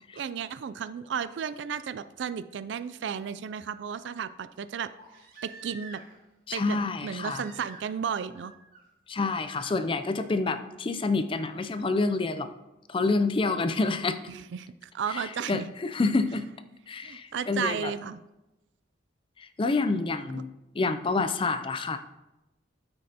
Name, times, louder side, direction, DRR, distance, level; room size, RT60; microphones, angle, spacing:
voice 1, 0.1-4.9 5.4-6.0 6.5-6.8 7.0-8.5 14.3-14.7 14.9-15.7 17.0-18.2, right 7 dB, 65° right, 14 dB, 0.3 m, -33 dB
Crying sobbing, 4.9-6.3 7.2-8.0 8.3-8.8 9.4-9.8 11.4-11.5, right 3 dB, 45° right, 2.6 m, -49 dB
voice 2, 6.5-7.4 9.1-12.5 12.9-14.2 15.1-16.5 16.9-17.9 19.4-20.5 20.7-22.0, left 3 dB, 25° left, 10 dB, 0.4 m, -28 dB
13.0 x 5.3 x 2.8 m, 0.99 s
head